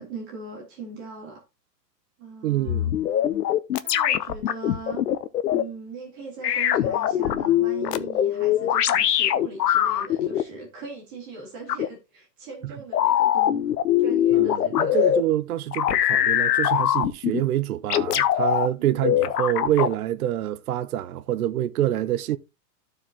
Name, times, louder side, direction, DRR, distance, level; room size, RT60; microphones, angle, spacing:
voice 1, 0.0-1.4 2.2-3.0 3.8-5.1 5.5-13.7 14.0-15.1 18.7-19.1, right 4 dB, 25° right, 2.6 m, -40 dB
voice 2, 2.4-2.9 12.6-12.7 14.3-22.4, right 12 dB, 60° right, 0.6 m, -26 dB
sound 1, 2.7-5.6 6.4-10.4 11.7-11.9 12.9-15.2 15.7-17.4 17.9-18.7 19.0-19.9, left 11 dB, 65° left, 0.9 m, -22 dB
14.0 x 4.8 x 2.9 m
hypercardioid pair, 175°, 50 cm